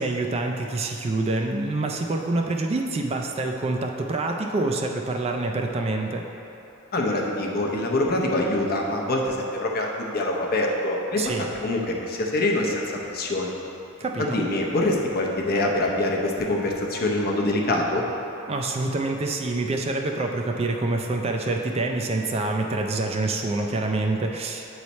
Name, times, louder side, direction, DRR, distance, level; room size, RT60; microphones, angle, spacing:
voice 1, 0.0-6.2 11.1-11.4 14.0-14.5 18.5-24.7, right 2 dB, 30° right, 2 dB, 0.3 m, -26 dB
voice 2, 6.9-12.8 13.1-13.6 14.2-18.0, left 1 dB, 45° left, -1 dB, 0.7 m, -25 dB
8.0 x 3.2 x 4.1 m, 3.0 s
head